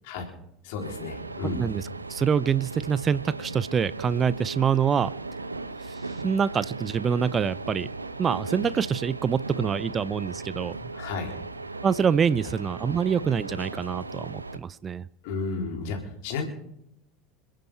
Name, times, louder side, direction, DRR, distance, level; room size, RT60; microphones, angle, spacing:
voice 1, 0.6-1.6 10.9-11.3 15.2-16.4, left 4 dB, 60° left, 2 dB, 4.0 m, -32 dB
sound 1, 0.8-14.6, right 3 dB, 85° right, 0.8 m, -37 dB
voice 2, 1.5-1.8 2.1-5.1 5.8-6.0 6.2-7.9 8.2-10.8 11.8-15.1, right 7 dB, 30° right, 20 dB, 0.5 m, -25 dB
28.0 x 10.0 x 4.4 m, 0.78 s
figure-of-eight pair, 75°, 0 cm